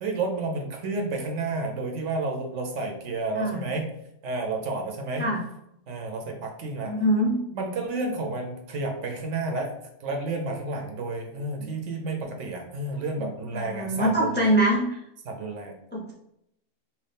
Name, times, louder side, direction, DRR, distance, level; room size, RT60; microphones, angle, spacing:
voice 1, 0.0-3.9 4.2-5.3 5.9-6.9 7.5-9.7 10.0-14.6 15.3-15.8, right 3 dB, 70° right, 3 dB, 0.9 m, -31 dB
voice 2, 6.8-7.4 11.6-11.7 13.5-15.0 15.9-16.1, right 1 dB, 10° left, -4 dB, 0.6 m, -24 dB
3.0 x 2.8 x 3.4 m, 0.79 s
omnidirectional pair, 1.3 m